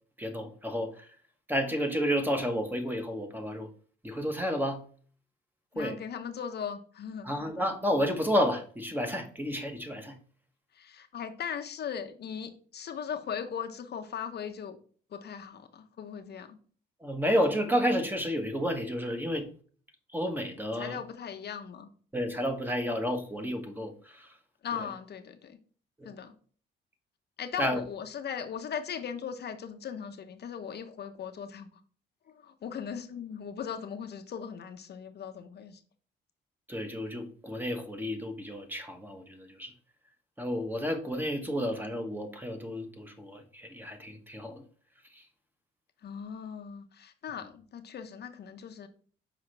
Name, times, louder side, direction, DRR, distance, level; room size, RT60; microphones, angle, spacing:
voice 1, 0.2-1.1 1.5-3.7 4.0-4.8 5.7-6.0 7.2-10.2 17.0-19.5 20.1-21.0 22.1-24.3 24.7-24.8 26.0-26.1 27.6-27.8 36.7-39.7 40.4-44.6 45.1-45.2, equal, 10° right, 5 dB, 1.2 m, -31 dB
voice 2, 5.7-7.3 10.7-14.8 15.1-16.6 20.8-21.9 24.6-25.6 26.0-26.3 27.4-31.7 32.3-35.8 46.0-48.9, left 7 dB, 55° left, 6 dB, 0.8 m, -38 dB
6.0 x 4.8 x 3.3 m, 0.44 s
cardioid pair, 90°, 20 cm